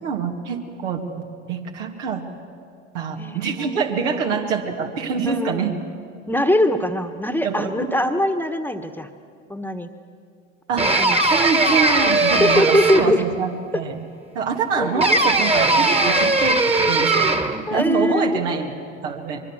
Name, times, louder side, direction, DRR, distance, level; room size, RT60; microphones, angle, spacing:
voice 1, 0.0-2.2 2.9-5.7 7.4-8.0 10.7-10.9 11.3-14.0 14.3-17.3 17.7-18.7 19.0-19.4, right 5 dB, 75° right, 2 dB, 2.5 m, -25 dB
voice 2, 3.2-4.2 5.3-5.7 6.3-9.1 9.5-9.9 11.0-11.2 12.4-13.2 13.7-13.8 14.8-15.1 17.7-18.4, left 1 dB, 5° left, 9 dB, 1.5 m, -22 dB
sound 1, 10.8-13.3 15.0-17.6, right 2 dB, 15° right, 1.8 m, -19 dB
24.0 x 23.5 x 7.4 m, 2.4 s
figure-of-eight pair, 70°, 37 cm